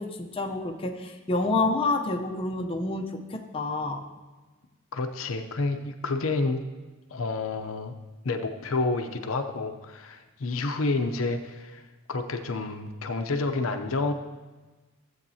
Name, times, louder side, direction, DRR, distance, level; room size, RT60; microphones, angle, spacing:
voice 1, 0.0-4.0, left 3 dB, 25° left, 2 dB, 0.7 m, -28 dB
voice 2, 4.9-6.6 7.1-7.9 8.2-11.8 12.1-14.1, left 3 dB, 75° left, 6 dB, 0.6 m, -29 dB
14.5 x 7.9 x 2.8 m, 1.2 s
head